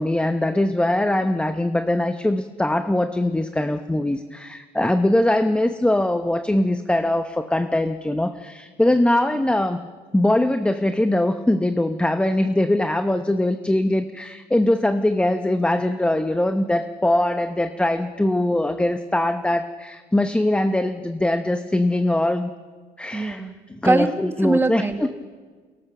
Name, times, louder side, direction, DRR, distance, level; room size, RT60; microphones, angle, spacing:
voice 1, 0.0-9.9 10.1-22.5 23.0-23.4 23.7-24.8, left 1 dB, 5° left, 9 dB, 0.8 m, -21 dB
voice 2, 23.1-25.1, right 3 dB, 15° right, 8 dB, 1.4 m, -23 dB
23.0 x 18.0 x 6.7 m, 1.5 s
cardioid pair, 110°, 17 cm